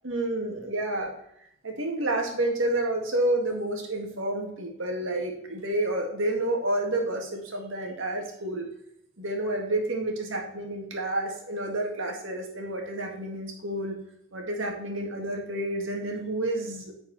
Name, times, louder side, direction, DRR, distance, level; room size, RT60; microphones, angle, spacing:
voice 1, 0.0-1.1 1.6-8.7 9.2-14.0 14.3-16.9, right 1 dB, 85° right, 2 dB, 1.7 m, -29 dB
9.0 x 4.6 x 4.0 m, 0.73 s
head